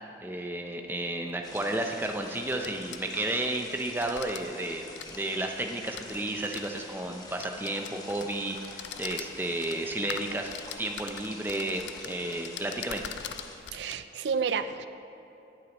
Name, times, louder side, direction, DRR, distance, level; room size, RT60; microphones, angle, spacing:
voice 1, 0.2-4.8 5.1-10.5 10.8-13.0, right 1 dB, 10° right, 3 dB, 0.6 m, -32 dB
sound 1, 0.9-1.0 2.4-3.6 3.9-4.4 4.8-6.7 7.3-8.3 8.6-13.9, left 9 dB, 90° left, 0.4 m, -42 dB
sound 2, 1.4-13.6, left 2 dB, 20° left, 1.2 m, -46 dB
voice 2, 13.7-14.9, right 6 dB, 85° right, 11 dB, 0.4 m, -30 dB
17.0 x 8.3 x 3.0 m, 3.0 s
head